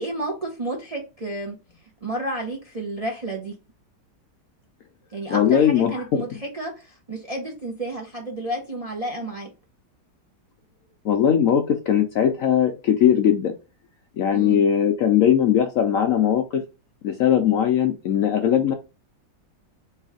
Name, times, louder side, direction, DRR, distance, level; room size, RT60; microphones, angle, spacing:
voice 1, 0.0-1.6 2.0-3.5 5.1-9.5 14.3-14.6, right 1 dB, 35° right, 0 dB, 0.6 m, -31 dB
voice 2, 5.3-6.2 11.0-13.5 14.2-16.6 17.0-18.7, left 9 dB, 65° left, 5 dB, 0.8 m, -19 dB
3.3 x 3.2 x 4.8 m, 0.29 s
omnidirectional pair, 1.9 m